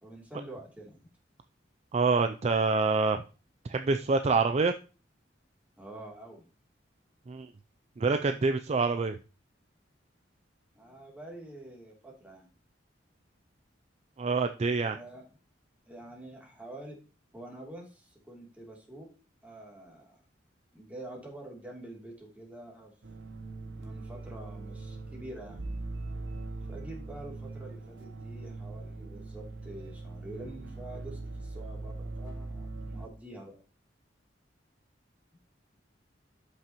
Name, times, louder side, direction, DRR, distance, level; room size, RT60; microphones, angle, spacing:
voice 1, 0.0-1.0 5.8-6.4 10.7-12.5 14.9-15.2 15.9-17.0 17.3-19.1 19.4-20.2 20.7-22.9 23.8-25.7 26.6-33.6, right 1 dB, 10° right, -2 dB, 2.9 m, -46 dB
voice 2, 1.9-3.2 3.7-4.7 7.3-7.5 8.0-9.2 14.2-15.0, right 4 dB, 35° right, 8 dB, 0.4 m, -26 dB
sound 1, 23.0-33.1, right 2 dB, 70° right, 1.0 m, -41 dB
12.5 x 6.1 x 3.0 m, 0.35 s
head